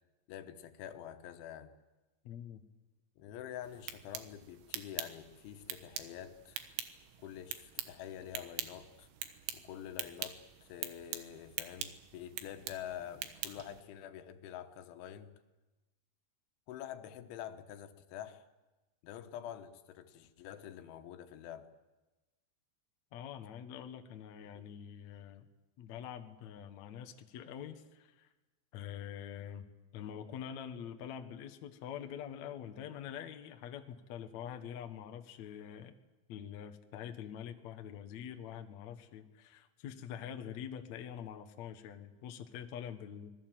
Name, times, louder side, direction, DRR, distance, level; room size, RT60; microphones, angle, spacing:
voice 1, 0.3-1.7 3.2-6.6 7.2-9.1 9.5-15.3 16.7-18.4 19.0-21.7 24.6-24.7, left 10 dB, 90° left, 8 dB, 3.6 m, -47 dB
voice 2, 2.2-2.6 23.1-25.5 25.8-28.3 28.7-29.7 29.9-35.9 36.3-43.3, left 9 dB, 70° left, 7 dB, 1.7 m, -45 dB
sound 1, 3.6-13.8, right 11 dB, 75° right, 3.5 m, -44 dB
26.0 x 20.0 x 7.6 m, 1.1 s
omnidirectional pair, 5.2 m